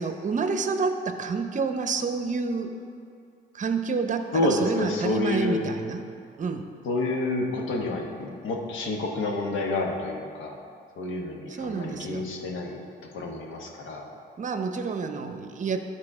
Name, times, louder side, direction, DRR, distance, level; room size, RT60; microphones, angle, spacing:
voice 1, 0.0-2.7 3.5-6.1 6.4-6.7 11.5-12.3 14.4-15.8, right 4 dB, 40° right, 7 dB, 0.7 m, -29 dB
voice 2, 4.3-5.6 6.8-10.6 11.0-12.8 13.1-14.0, left 2 dB, 80° left, 1 dB, 1.2 m, -28 dB
12.0 x 4.2 x 4.9 m, 2.4 s
cardioid pair, 90°, 20 cm